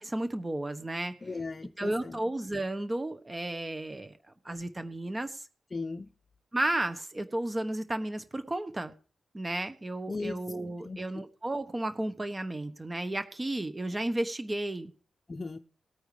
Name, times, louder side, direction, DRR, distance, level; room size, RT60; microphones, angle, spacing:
voice 1, 0.0-1.1 1.8-4.1 4.4-5.4 6.5-8.9 9.3-14.9, right 1 dB, 20° right, 9 dB, 1.1 m, -33 dB
voice 2, 1.2-2.2 5.7-6.1 10.1-10.4 10.8-11.0 15.3-15.6, left 3 dB, 35° left, 5 dB, 0.7 m, -36 dB
18.5 x 9.0 x 3.3 m, 0.40 s
cardioid pair, 90°, 0 cm